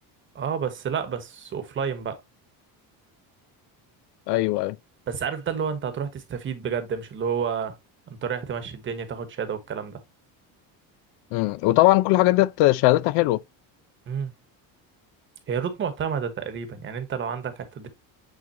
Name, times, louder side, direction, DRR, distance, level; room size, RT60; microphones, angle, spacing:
voice 1, 0.3-2.2 5.1-7.8 8.1-10.0 14.1-14.3 15.5-17.9, right 7 dB, 30° right, 1.2 m, -30 dB
voice 2, 4.3-4.8 11.3-13.4, left 18 dB, 85° left, 0.6 m, -20 dB
9.0 x 3.8 x 2.8 m
cardioid pair, 175°, 39 cm